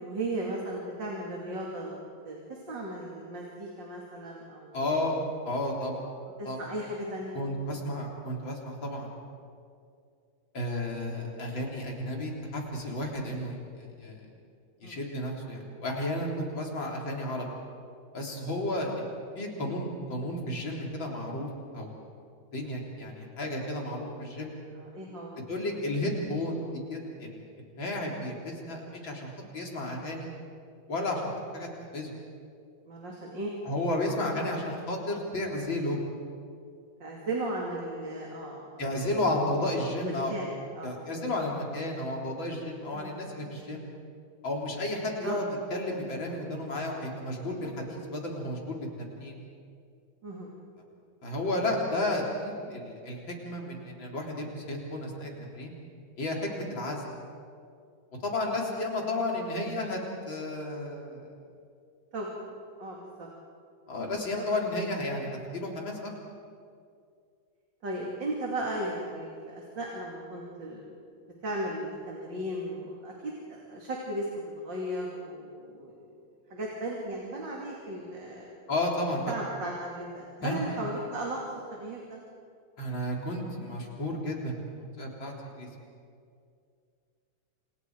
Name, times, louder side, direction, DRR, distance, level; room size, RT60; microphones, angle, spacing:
voice 1, 0.0-2.0 2.2-5.1 6.4-7.4 7.8-8.0 14.8-15.0 19.5-19.7 24.7-25.4 32.9-33.5 37.0-39.1 40.0-41.5 42.9-43.2 43.6-43.8 45.2-45.4 50.2-50.5 62.1-63.3 64.4-64.5 67.8-70.9 71.4-76.2 76.5-78.5 79.3-82.2, right 1 dB, 60° right, -2 dB, 3.5 m, -36 dB
voice 2, 4.7-5.2 5.5-6.0 6.4-6.6 7.3-9.1 10.5-14.2 14.8-17.5 18.1-21.9 22.5-24.5 25.5-27.4 27.8-30.3 30.9-31.2 31.5-32.1 33.6-36.0 38.8-40.3 40.8-43.8 44.4-49.4 51.2-55.7 56.2-57.0 58.2-60.0 60.3-61.2 63.9-66.1 78.7-79.3 80.4-80.6 82.8-85.7, left 1 dB, 65° left, -1 dB, 4.4 m, -32 dB
28.0 x 28.0 x 4.8 m, 2.3 s
omnidirectional pair, 2.3 m